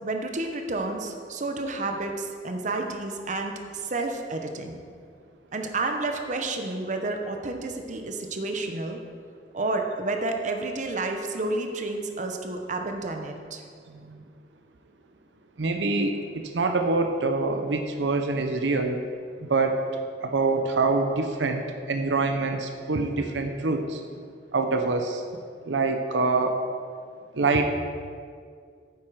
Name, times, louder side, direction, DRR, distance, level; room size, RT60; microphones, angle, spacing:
voice 1, 0.0-4.8 5.5-9.0 9.5-13.6, right 2 dB, 45° right, 4 dB, 0.8 m, -30 dB
voice 2, 13.9-14.2 15.6-19.0 19.4-19.8 20.2-24.0 24.5-25.2 25.7-26.6 27.4-27.7, right 3 dB, 90° right, 5 dB, 0.7 m, -25 dB
9.5 x 7.4 x 4.7 m, 2.1 s
head